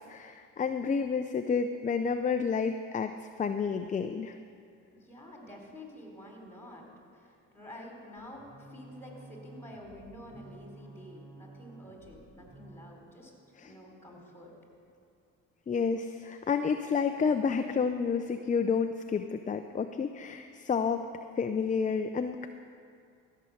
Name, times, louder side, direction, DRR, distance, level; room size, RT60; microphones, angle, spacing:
voice 1, 0.1-3.1 3.4-4.4 13.6-13.7 15.7-21.1 21.4-22.5, left 5 dB, 25° left, 7 dB, 0.5 m, -30 dB
voice 2, 4.9-6.8 7.1-13.3 13.6-14.5, left 1 dB, 5° left, 0 dB, 3.6 m, -49 dB
sound 1, 8.2-13.0, right 2 dB, 35° right, 2.4 m, -52 dB
14.5 x 6.7 x 7.2 m, 2.3 s
supercardioid pair, 75°, 32 cm